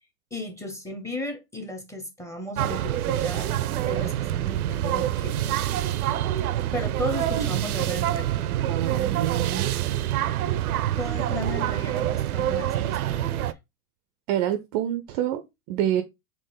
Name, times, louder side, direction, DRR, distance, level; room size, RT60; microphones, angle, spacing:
voice 1, 0.3-3.5 3.8-5.6 6.7-8.4 11.0-13.5, left 1 dB, 5° left, 0.8 m, -35 dB
sound 1, 2.6-13.5, right 12 dB, 85° right, 0.5 m, -26 dB
voice 2, 7.1-7.5 8.6-9.7 14.3-16.0, right 11 dB, 35° right, 0.4 m, -28 dB
4.2 x 2.9 x 3.8 m
hypercardioid pair, 110°, 43 cm